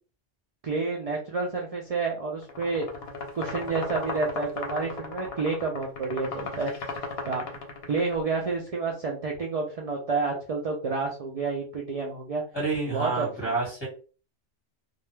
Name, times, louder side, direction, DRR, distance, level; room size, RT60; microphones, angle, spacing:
voice 1, 0.6-2.9 3.3-6.7 7.3-7.5 7.9-12.4 12.9-13.7, right 4 dB, 65° right, 0 dB, 0.3 m, -29 dB
sound 1, 2.4-8.2, left 3 dB, 65° left, 0.8 m, -36 dB
voice 2, 12.5-13.9, right 3 dB, 20° left, -3 dB, 1.2 m, -29 dB
2.3 x 2.2 x 3.1 m, 0.37 s
omnidirectional pair, 1.2 m